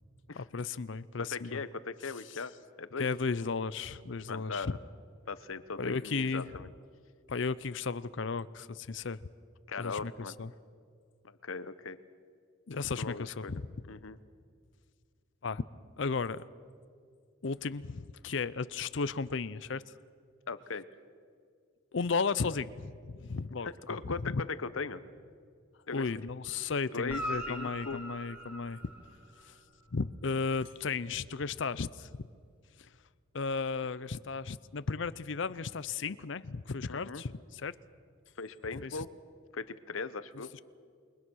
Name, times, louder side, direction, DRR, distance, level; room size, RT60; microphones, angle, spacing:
voice 1, 0.3-1.6 2.3-2.4 3.0-4.8 5.8-6.5 7.3-9.2 9.8-10.1 10.4-10.5 12.7-13.6 15.4-15.6 16.0-16.4 17.4-19.8 21.9-24.4 25.9-28.8 29.5-29.6 29.9-32.1 32.8-32.9 33.3-37.7 38.8-39.0 40.5-40.6, left 4 dB, 65° left, 16 dB, 0.6 m, -34 dB
voice 2, 1.2-3.1 4.3-4.8 5.3-6.7 9.7-10.4 11.2-12.0 13.0-13.6 13.9-14.2 20.5-20.8 23.6-24.4 24.7-25.0 25.9-26.1 26.9-28.0 36.9-37.2 38.4-39.1 39.5-40.5, left 4 dB, 90° left, 14 dB, 0.9 m, -39 dB
Guitar, 27.0-29.6 33.5-33.6, equal, 5° right, 2.9 m, -41 dB
28.5 x 22.5 x 6.3 m, 2.1 s
head